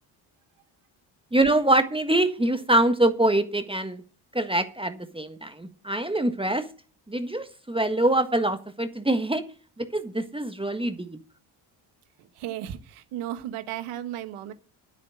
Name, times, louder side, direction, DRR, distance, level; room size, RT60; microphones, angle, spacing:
voice 1, 1.3-4.0 4.3-6.6 7.1-9.4 9.8-11.2, right 1 dB, 10° right, 1.4 m, -24 dB
voice 2, 12.2-14.5, right 12 dB, 80° right, 1.4 m, -35 dB
9.8 x 8.2 x 7.7 m
supercardioid pair, 70°, 50 cm